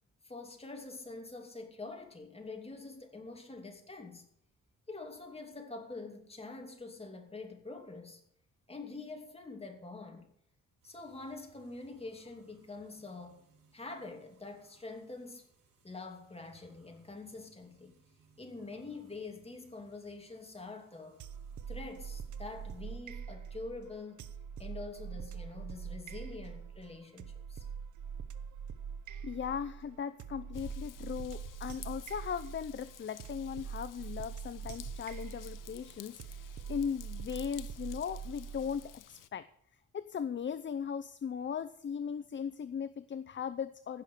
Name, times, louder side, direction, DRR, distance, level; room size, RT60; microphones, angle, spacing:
voice 1, 0.2-4.2 4.9-8.2 8.7-10.3 10.8-15.5 15.8-18.0 18.4-21.2 21.7-24.3 24.6-27.6, left 3 dB, 20° left, 2.8 m, -46 dB
sound 1, 10.8-22.8, right 5 dB, 90° right, 4.6 m, -67 dB
sound 2, 21.2-38.9, right 7 dB, 70° right, 1.0 m, -44 dB
voice 2, 29.2-39.5 39.9-44.0, left 7 dB, 35° left, 0.6 m, -38 dB
Raindrop / Vehicle horn car horn honking / Trickle dribble, 30.5-39.3, left 12 dB, 85° left, 0.7 m, -53 dB
16.0 x 6.5 x 8.4 m
wide cardioid pair, 130°, 31 cm